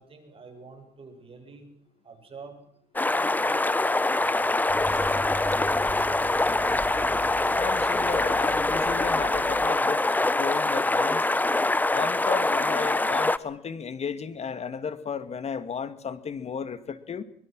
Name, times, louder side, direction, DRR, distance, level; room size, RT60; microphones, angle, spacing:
voice 1, 0.0-1.7 2.0-2.6 3.0-3.6 4.2-5.2, right 4 dB, 30° right, 5 dB, 6.7 m, -47 dB
sound 1, 3.0-13.4, left 2 dB, 10° left, 0.8 m, -24 dB
sound 2, 4.7-9.7, right 2 dB, 15° right, 3.8 m, -40 dB
voice 2, 7.5-11.2 11.9-17.2, left 6 dB, 40° left, 12 dB, 2.2 m, -34 dB
24.0 x 22.5 x 6.3 m, 0.67 s
cardioid pair, 110°, 17 cm